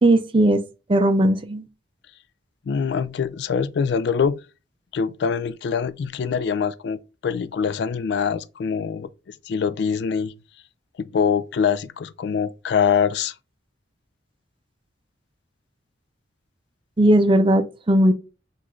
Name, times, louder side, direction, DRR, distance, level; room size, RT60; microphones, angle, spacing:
voice 1, 0.0-0.6 0.9-1.7 17.0-18.1, right 1 dB, 25° right, 0.5 m, -17 dB
voice 2, 2.7-4.4 4.9-10.3 11.0-13.3, left 6 dB, 65° left, 0.3 m, -24 dB
5.7 x 2.4 x 3.1 m
head